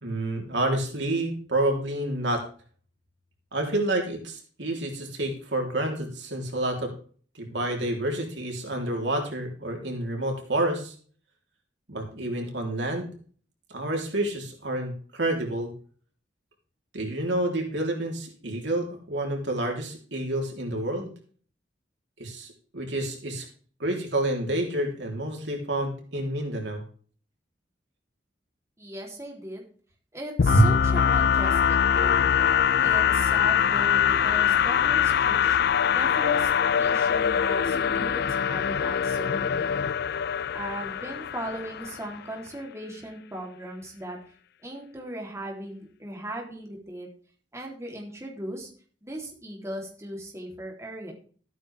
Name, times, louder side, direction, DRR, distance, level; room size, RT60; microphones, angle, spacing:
voice 1, 0.0-2.4 3.5-6.9 7.4-10.9 11.9-13.1 13.7-15.7 16.9-21.1 22.2-23.5 23.8-26.8 30.5-30.7, right 1 dB, 75° right, 1 dB, 3.6 m, -28 dB
voice 2, 28.8-29.6 30.1-32.3 32.8-35.6 35.9-36.5 36.8-39.9 40.5-44.2 44.6-47.1 47.5-48.7 49.0-51.1, right 1 dB, 15° right, -1 dB, 3.4 m, -38 dB
sound 1, 30.4-42.2, left 8 dB, 60° left, 0.5 m, -23 dB
14.5 x 9.4 x 3.6 m, 0.43 s
head